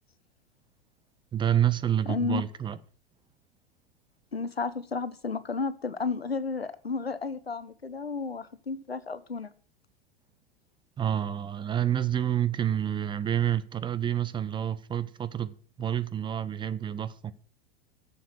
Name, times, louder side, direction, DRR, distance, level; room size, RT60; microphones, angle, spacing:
voice 1, 1.3-2.8 11.0-17.3, right 10 dB, 15° right, 0.5 m, -28 dB
voice 2, 2.1-2.4 4.3-9.5, left 4 dB, 90° left, 0.8 m, -32 dB
10.5 x 7.1 x 6.3 m
figure-of-eight pair, 90°, 30 cm